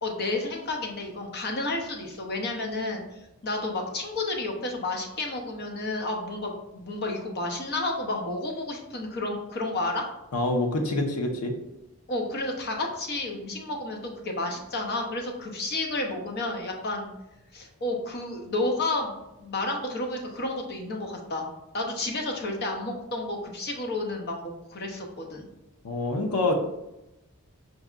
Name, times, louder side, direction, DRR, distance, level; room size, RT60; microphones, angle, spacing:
voice 1, 0.0-10.1 12.1-17.1 17.5-19.1 19.4-21.5 21.7-25.5, left 2 dB, 45° left, 2 dB, 0.7 m, -31 dB
voice 2, 10.3-11.5 25.8-26.5, left 2 dB, 85° left, 3 dB, 0.6 m, -26 dB
6.0 x 2.7 x 2.4 m, 0.92 s
head